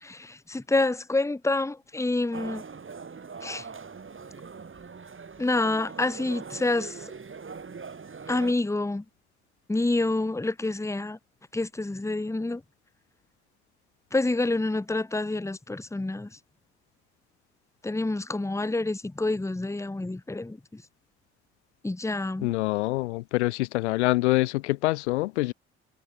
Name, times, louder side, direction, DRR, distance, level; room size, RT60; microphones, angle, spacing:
voice 1, 0.0-2.6 3.4-3.7 5.4-7.1 8.3-9.0 9.7-11.2 11.5-12.6 14.1-16.4 17.8-20.8 21.8-22.5, left 2 dB, 10° left, 1.1 m, -28 dB
sound 1, 2.3-8.5, right 5 dB, 35° right, 5.2 m, -41 dB
voice 2, 22.4-25.5, left 20 dB, 90° left, 1.5 m, -25 dB
hypercardioid pair, 50°, 33 cm